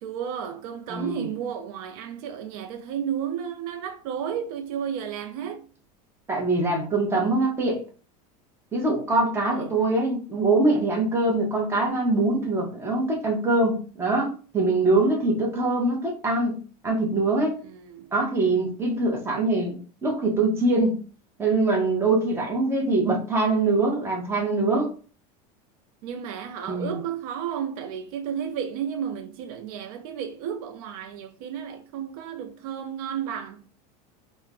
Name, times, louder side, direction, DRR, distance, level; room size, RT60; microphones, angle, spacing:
voice 1, 0.0-5.6 9.6-9.9 15.0-15.3 17.6-18.1 26.0-33.6, right 8 dB, 75° right, 0.4 m, -33 dB
voice 2, 0.9-1.3 6.3-7.8 8.7-16.6 16.8-17.6 18.1-19.8 20.0-21.0 21.4-24.9 26.7-27.0, right 2 dB, 10° right, 0.7 m, -23 dB
2.3 x 2.1 x 3.5 m
supercardioid pair, 150°, 20 cm